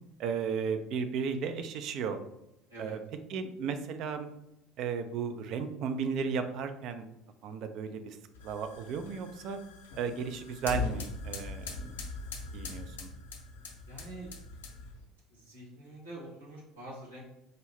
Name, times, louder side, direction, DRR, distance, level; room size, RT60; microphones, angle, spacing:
voice 1, 0.2-2.2 2.8-3.0 3.3-4.3 4.8-7.1 7.4-9.6 9.9-12.0 12.5-13.1, right 6 dB, 50° right, 8 dB, 0.4 m, -34 dB
sound 1, 8.3-15.0, left 4 dB, 70° left, 0.6 m, -41 dB
voice 2, 13.9-14.3 15.3-17.3, right 1 dB, 80° right, -6 dB, 1.4 m, -46 dB
4.1 x 2.6 x 3.2 m, 0.84 s
figure-of-eight pair, 60°, 0 cm